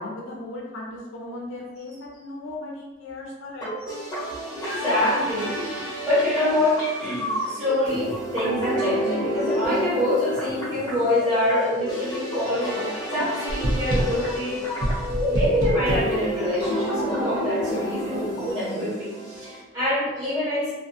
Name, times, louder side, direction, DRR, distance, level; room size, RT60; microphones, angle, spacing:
voice 1, 0.0-3.7, left 2 dB, 65° left, -2 dB, 0.5 m, -36 dB
sound 1, 3.6-19.6, equal, 20° left, 0.9 m, -29 dB
voice 2, 4.5-12.8 13.1-15.0 15.3-20.7, left 1 dB, 20° right, -11 dB, 0.9 m, -26 dB
sound 2, 13.5-14.3 14.8-16.2, right 1 dB, 70° right, 0.6 m, -25 dB
2.4 x 2.3 x 2.6 m, 1.2 s
head